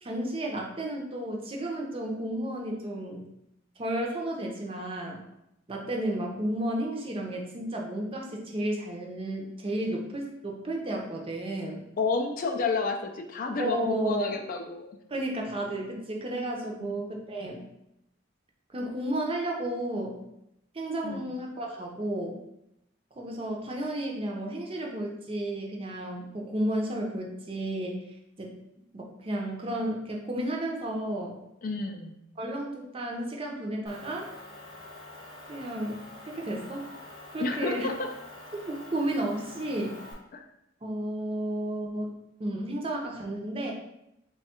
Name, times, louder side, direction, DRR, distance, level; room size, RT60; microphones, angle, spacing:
voice 1, 0.0-3.2 3.8-5.2 5.7-11.8 13.6-14.4 15.1-17.7 18.7-20.2 20.7-22.4 23.2-28.0 28.4-28.6 28.9-31.3 32.4-34.3 35.5-36.9 37.3-37.9 38.7-39.9 40.8-43.7, right 1 dB, 30° right, 0 dB, 0.5 m, -32 dB
voice 2, 12.0-15.0 16.8-16.9 21.0-21.3 31.6-32.1 37.4-38.1 40.3-40.4, left 3 dB, 45° left, 4 dB, 0.3 m, -30 dB
Motor vehicle (road) / Engine, 33.9-40.1, left 2 dB, 20° left, 0.9 m, -46 dB
3.2 x 2.3 x 4.2 m, 0.83 s
head